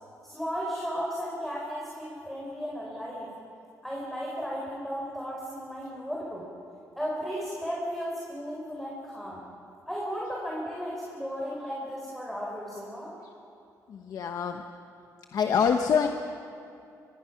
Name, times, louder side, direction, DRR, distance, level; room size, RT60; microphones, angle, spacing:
voice 1, 0.2-3.3 3.8-6.5 7.0-9.4 9.9-13.1, equal, 5° left, -3 dB, 4.0 m, -35 dB
voice 2, 13.9-14.6 15.3-16.1, left 6 dB, 65° left, 5 dB, 1.0 m, -25 dB
24.5 x 22.5 x 5.9 m, 2.5 s
cardioid pair, 115°, 7 cm